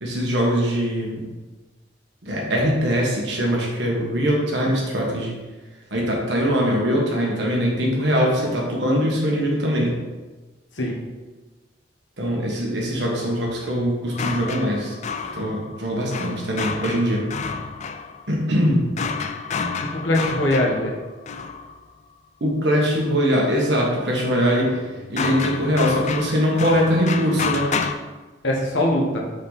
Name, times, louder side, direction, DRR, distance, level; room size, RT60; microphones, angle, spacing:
voice 1, 0.0-1.3 2.2-5.3 5.9-10.0 12.2-14.9 15.3-17.3 18.3-18.9 22.4-24.8 25.1-27.7, equal, 65° right, -2 dB, 1.6 m, -22 dB
sound 1, 14.1-21.9 24.7-27.9, left 5 dB, 40° left, 0.4 m, -30 dB
voice 2, 19.8-20.9 28.4-29.2, left 1 dB, 85° left, -1 dB, 1.4 m, -22 dB
5.6 x 4.9 x 4.1 m, 1.2 s
head